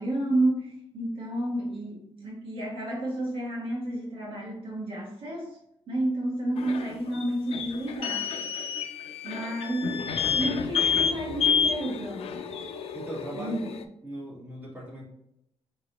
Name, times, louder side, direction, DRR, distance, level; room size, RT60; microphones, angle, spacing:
voice 1, 0.0-5.6 5.9-8.4 9.2-10.0 10.3-12.4 13.3-13.7, right 1 dB, 65° right, -3 dB, 1.3 m, -30 dB
sound 1, 6.6-13.8, left 7 dB, 80° left, 0.4 m, -29 dB
voice 2, 10.0-10.5 12.9-13.5 14.0-15.0, right 1 dB, 20° right, -6 dB, 1.6 m, -39 dB
4.6 x 3.0 x 2.9 m, 0.77 s
wide cardioid pair, 150°, 10 cm